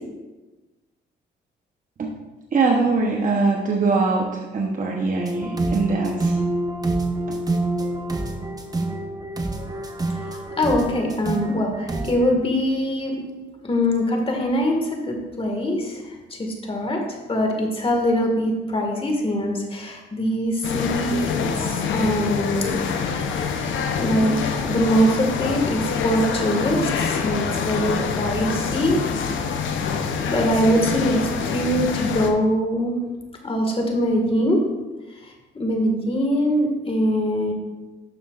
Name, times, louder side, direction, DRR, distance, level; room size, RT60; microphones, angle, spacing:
voice 1, 2.5-6.4 7.3-7.4, right 3 dB, 40° right, -1 dB, 1.0 m, -22 dB
sound 1, 5.2-12.3, right 2 dB, 20° right, 0.9 m, -27 dB
voice 2, 10.1-13.2 13.6-23.7 24.0-29.1 29.9-33.0 33.4-34.6 35.1-37.5, equal, 30° left, 1 dB, 1.8 m, -23 dB
sound 2, 20.6-32.3, left 6 dB, 75° left, 0.8 m, -26 dB
11.5 x 7.1 x 2.5 m, 1.2 s
cardioid pair, 90°, 20 cm